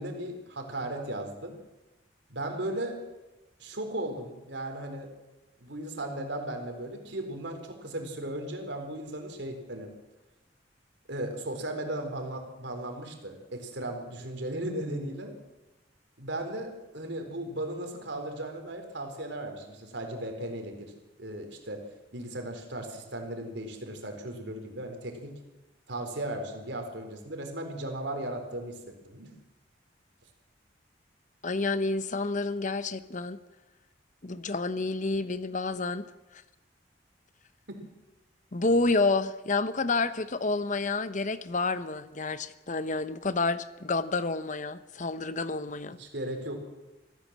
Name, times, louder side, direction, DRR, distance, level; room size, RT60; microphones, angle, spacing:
voice 1, 0.0-1.6 2.3-3.0 3.6-5.1 5.6-9.9 11.1-15.3 16.2-20.9 21.2-21.8 22.1-25.3 25.9-29.3 37.7-37.8 46.0-46.6, right 1 dB, 75° right, 5 dB, 4.2 m, -36 dB
voice 2, 31.4-33.4 34.2-36.1 38.5-46.0, left 3 dB, 45° left, 13 dB, 0.9 m, -29 dB
24.5 x 15.0 x 7.5 m, 1.1 s
head